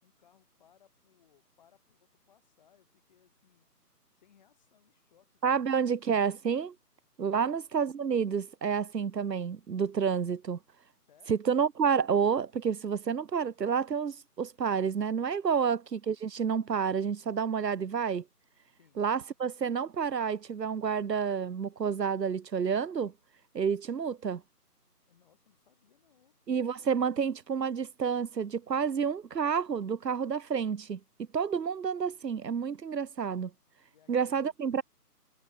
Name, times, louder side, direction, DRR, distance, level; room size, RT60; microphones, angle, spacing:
voice 1, 0.0-3.7 4.2-6.0 7.3-7.6 11.1-11.4 15.5-15.8 18.8-19.0 25.1-26.3 33.9-34.8, left 9 dB, 25° left, 6.0 m, -66 dB
voice 2, 5.4-6.7 7.2-10.6 11.3-18.2 19.0-23.1 23.5-24.4 26.5-31.0 31.3-33.5 34.1-34.8, right 6 dB, 85° right, 0.8 m, -29 dB
figure-of-eight pair, 160°, 48 cm